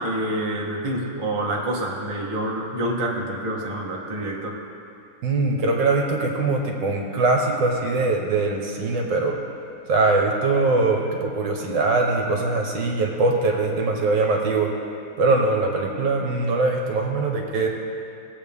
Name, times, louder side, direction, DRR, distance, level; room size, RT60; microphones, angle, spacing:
voice 1, 0.0-4.6, right 1 dB, 20° right, -2 dB, 1.0 m, -27 dB
voice 2, 5.2-9.4 9.9-14.7 15.2-17.7, right 3 dB, 65° right, 1 dB, 1.7 m, -22 dB
20.5 x 8.2 x 3.6 m, 2.6 s
omnidirectional pair, 2.2 m